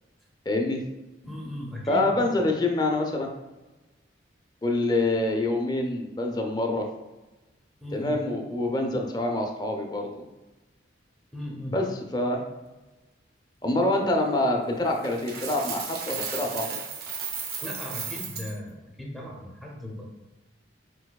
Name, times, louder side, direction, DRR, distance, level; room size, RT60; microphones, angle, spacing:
voice 1, 0.5-0.8 1.9-3.3 4.6-6.9 7.9-10.2 11.7-11.9 12.1-12.4 13.6-16.8, left 2 dB, 20° left, 2 dB, 0.4 m, -26 dB
voice 2, 1.2-2.4 7.8-8.2 11.3-11.7 17.6-20.1, left 1 dB, ahead, -2 dB, 0.8 m, -37 dB
Coin (dropping), 15.0-18.5, right 6 dB, 55° right, 0.6 m, -34 dB
4.7 x 4.3 x 2.3 m, 1.1 s
head